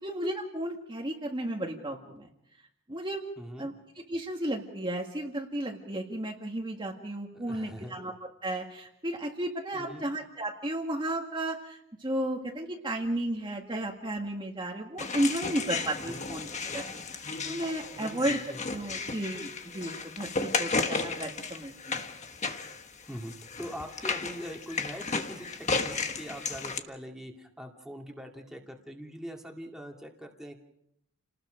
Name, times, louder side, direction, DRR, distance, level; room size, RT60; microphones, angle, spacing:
voice 1, 0.0-2.3 2.9-3.2 3.6-3.7 4.1-8.1 8.4-16.5 16.7-18.4 18.7-22.0, right 1 dB, 20° right, 0 dB, 1.8 m, -33 dB
voice 2, 3.4-3.7 7.3-8.0 9.7-10.1 16.1-16.2 17.9-18.7 23.1-30.6, equal, ahead, 0 dB, 2.3 m, -43 dB
sound 1, 15.0-26.8, left 4 dB, 30° left, 1.4 m, -34 dB
29.5 x 19.5 x 5.1 m, 0.78 s
head